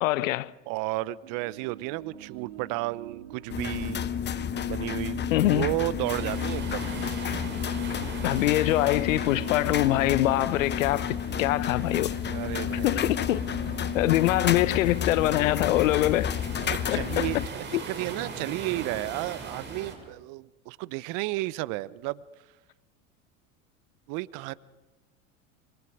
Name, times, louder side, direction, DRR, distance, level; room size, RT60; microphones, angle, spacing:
voice 1, 0.0-0.5 5.3-5.7 8.2-12.1 12.8-13.4 13.9-16.3 16.9-17.3 17.7-17.8, left 16 dB, 75° left, 0.9 m, -24 dB
voice 2, 0.7-4.0 4.7-6.9 12.3-13.3 16.6-22.2 24.1-24.5, right 19 dB, 55° right, 0.8 m, -33 dB
sound 1, 1.2-16.0, right 11 dB, 75° right, 1.7 m, -45 dB
sound 2, 3.5-17.5, left 8 dB, 25° left, 1.0 m, -31 dB
sound 3, 6.1-20.0, right 4 dB, 25° right, 6.7 m, -41 dB
25.5 x 25.0 x 4.9 m
hypercardioid pair, 85°, 40 cm